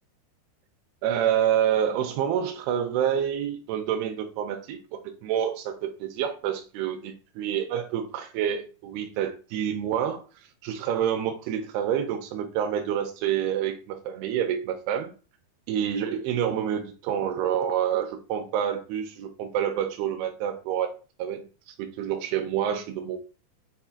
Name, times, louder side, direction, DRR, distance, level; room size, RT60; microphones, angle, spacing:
voice 1, 1.0-10.2 10.6-15.1 15.7-20.9 21.2-23.2, right 9 dB, 85° right, 4 dB, 2.6 m, -28 dB
7.0 x 2.4 x 2.6 m, 0.35 s
omnidirectional pair, 4.5 m